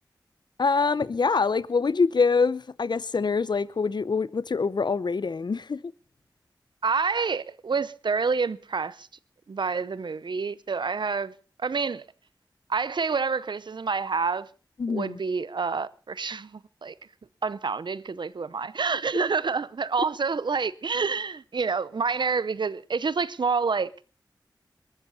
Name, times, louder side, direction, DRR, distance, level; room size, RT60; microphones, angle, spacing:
voice 1, 0.6-5.8 14.8-15.2, left 4 dB, 65° left, 0.7 m, -25 dB
voice 2, 6.8-9.1 9.5-11.3 11.6-12.0 12.7-14.5 14.9-16.9 17.4-23.9, right 5 dB, 75° right, 0.7 m, -28 dB
21.5 x 13.5 x 4.1 m
cardioid pair, 40°, 8 cm